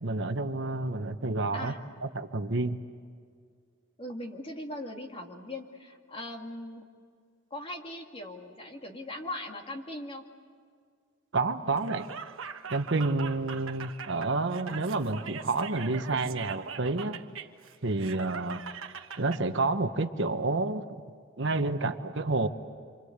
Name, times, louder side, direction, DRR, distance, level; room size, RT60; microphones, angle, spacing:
voice 1, 0.0-1.7 2.0-2.8 11.3-12.1 12.7-17.2 17.8-18.6 19.2-20.8 21.4-22.5, right 3 dB, 65° right, 8 dB, 1.2 m, -29 dB
voice 2, 4.0-6.9 7.5-10.2, left 1 dB, 30° left, 2 dB, 2.4 m, -40 dB
Laughter, 11.7-19.4, right 6 dB, 85° right, 1.3 m, -42 dB
27.5 x 26.0 x 8.2 m, 2.1 s
head